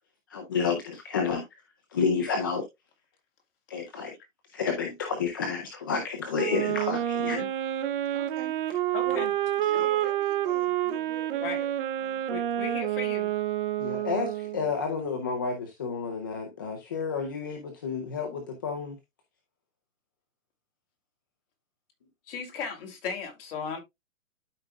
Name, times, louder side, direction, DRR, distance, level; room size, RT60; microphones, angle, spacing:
voice 1, 0.3-1.4 1.9-2.6 3.7-4.2 4.5-7.5 9.7-9.9 13.8-19.0, left 5 dB, 15° left, 0.4 m, -30 dB
Wind instrument woodwind instrument, 6.3-14.7, right 12 dB, 40° right, 0.8 m, -28 dB
voice 2, 8.1-8.6 9.0-9.3 9.6-11.7 12.0-12.2, right 7 dB, 20° right, 1.6 m, -43 dB
voice 3, 8.9-9.3 11.4-11.6 12.3-13.3 22.3-23.8, left 5 dB, 45° left, 2.8 m, -36 dB
12.5 x 4.9 x 2.3 m
hypercardioid pair, 160°, 41 cm